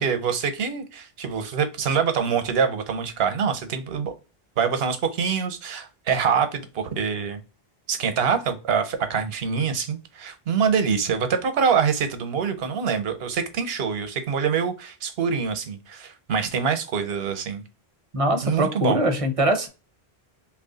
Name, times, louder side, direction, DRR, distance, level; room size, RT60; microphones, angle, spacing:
voice 1, 0.0-4.1 4.6-7.4 7.9-17.6 18.4-19.0, right 6 dB, 75° right, 0.9 m, -25 dB
voice 2, 18.1-19.7, right 1 dB, 40° right, 0.6 m, -22 dB
2.9 x 2.4 x 3.7 m
omnidirectional pair, 1.0 m